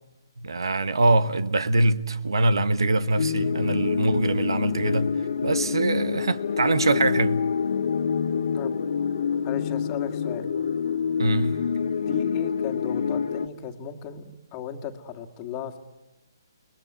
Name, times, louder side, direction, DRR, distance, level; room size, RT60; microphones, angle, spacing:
voice 1, 0.4-5.1 5.4-7.5 11.2-11.6, right 2 dB, 80° right, 1.4 m, -23 dB
sound 1, 3.2-13.5, left 6 dB, 60° left, 1.1 m, -26 dB
voice 2, 9.4-10.5 12.1-15.8, left 9 dB, 25° left, 2.0 m, -35 dB
30.0 x 20.5 x 8.2 m
hypercardioid pair, 150°, 2 cm